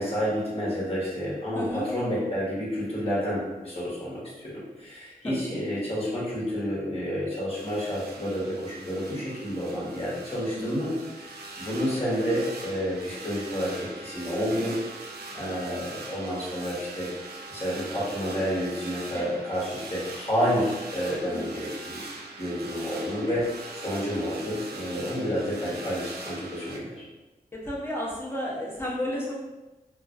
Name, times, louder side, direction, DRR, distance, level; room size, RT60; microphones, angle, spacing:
voice 1, 0.0-14.7 15.3-17.1 17.5-22.0 22.4-23.4 23.8-27.0, equal, 40° left, -7 dB, 1.3 m, -30 dB
voice 2, 1.5-1.9 5.2-5.6 10.5-10.8 14.5-14.8 19.1-19.4 21.3-21.5 23.3-23.4 27.6-29.3, equal, 15° left, -5 dB, 0.8 m, -33 dB
sound 1, 7.5-26.8, right 3 dB, 85° right, 0.4 m, -42 dB
2.7 x 2.4 x 2.6 m, 1.1 s
cardioid pair, 55°, 16 cm